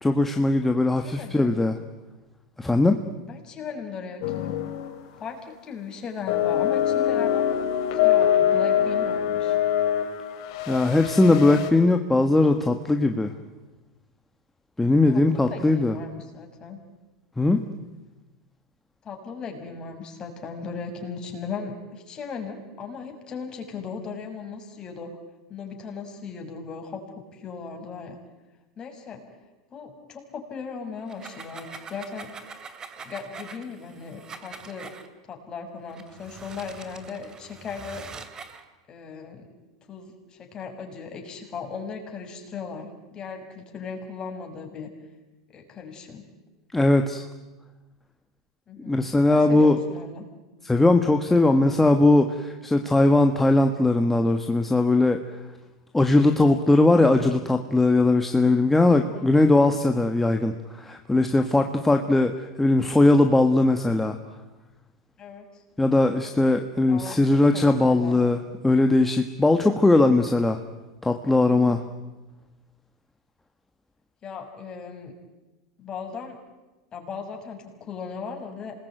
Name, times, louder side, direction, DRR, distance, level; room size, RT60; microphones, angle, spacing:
voice 1, 0.0-1.8 2.6-3.0 10.7-13.3 14.8-16.0 17.4-17.6 46.7-47.2 48.9-49.8 50.6-55.2 55.9-64.2 65.8-70.6 71.0-71.8, left 2 dB, 10° left, 5 dB, 1.6 m, -20 dB
voice 2, 1.0-1.6 3.2-4.5 5.2-7.4 7.9-9.6 15.1-16.8 19.0-25.1 25.5-28.2 28.8-29.2 29.7-32.3 33.0-34.9 35.3-38.0 38.9-39.5 39.9-44.9 45.5-46.2 48.7-49.0 49.3-50.3 59.0-59.3 65.2-65.4 66.9-67.2 67.5-68.2 71.5-71.8 74.2-75.1 75.8-76.4 76.9-78.7, left 5 dB, 30° left, 3 dB, 6.3 m, -37 dB
sound 1, 4.2-5.0 5.3-5.5 6.3-11.7, left 10 dB, 60° left, 4.1 m, -24 dB
sound 2, 31.0-35.1 35.9-38.6, right 5 dB, 25° right, 2.7 m, -43 dB
27.0 x 20.5 x 9.2 m, 1.1 s
hypercardioid pair, 100°, 3 cm